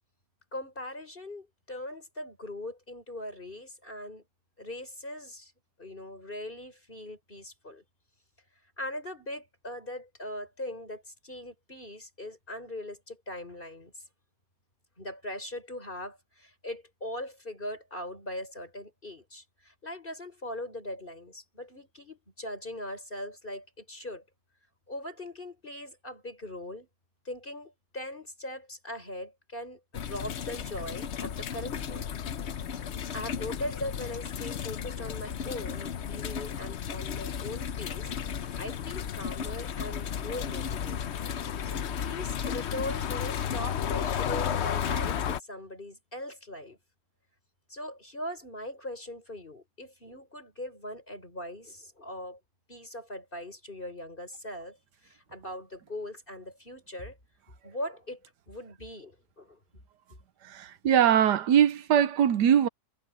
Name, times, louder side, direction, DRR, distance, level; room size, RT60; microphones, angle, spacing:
voice 1, 0.5-4.2 4.6-5.5 5.8-7.8 8.8-14.0 15.0-24.2 24.9-26.9 27.2-32.1 33.1-41.0 41.6-46.8 47.7-52.4 52.7-54.8 55.0-57.2 57.6-58.2 58.5-59.6, left 1 dB, 30° left, 6.3 m, -40 dB
sound 1, 29.9-45.4, left 8 dB, 55° left, 0.8 m, -33 dB
voice 2, 60.4-62.7, right 9 dB, 80° right, 1.3 m, -22 dB
omnidirectional pair, 1.8 m